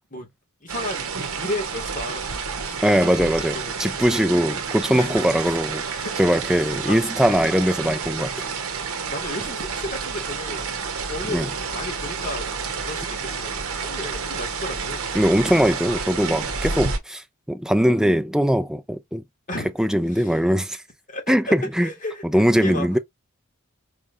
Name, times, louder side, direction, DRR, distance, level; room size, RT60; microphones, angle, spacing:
voice 1, 0.6-3.9 4.9-5.1 5.5-5.6 5.9-6.1 6.6-7.0 9.0-15.1 19.5-19.7 20.1-20.4 21.1-23.0, left 1 dB, 35° left, 2.0 m, -34 dB
sound 1, 0.7-17.0, right 5 dB, 65° right, 1.1 m, -30 dB
voice 2, 2.8-5.8 6.2-8.3 11.3-11.5 15.1-19.2 19.8-20.8 21.3-21.9 22.3-23.0, equal, ahead, 0.5 m, -21 dB
4.8 x 3.3 x 2.6 m
head